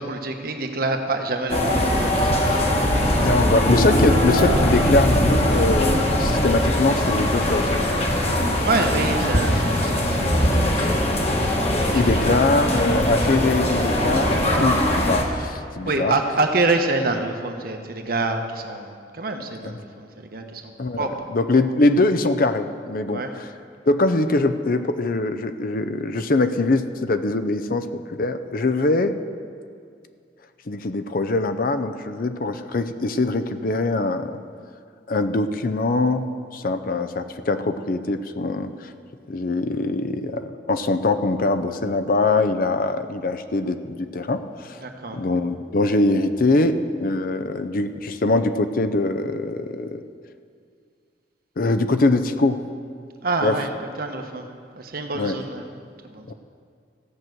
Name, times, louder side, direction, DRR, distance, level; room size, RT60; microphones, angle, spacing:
voice 1, 0.0-2.9 4.1-4.2 8.6-11.0 11.9-12.3 15.9-19.9 20.2-20.6 21.0-21.2 23.1-23.3 44.8-45.2 53.2-53.7 54.0-54.5 54.8-55.6 56.1-56.2, right 3 dB, 55° right, 4 dB, 1.1 m, -26 dB
sound 1, 1.5-15.2, left 1 dB, 35° left, 1.3 m, -21 dB
voice 2, 3.2-7.7 11.9-16.1 19.6-19.8 20.8-23.5 23.9-29.2 30.7-34.4 35.1-36.3 36.5-38.9 39.3-44.8 45.1-50.0 51.6-52.6 53.4-53.7 55.1-55.4 56.3-56.4, left 2 dB, 50° left, 9 dB, 0.5 m, -22 dB
15.0 x 6.0 x 7.8 m, 2.3 s
head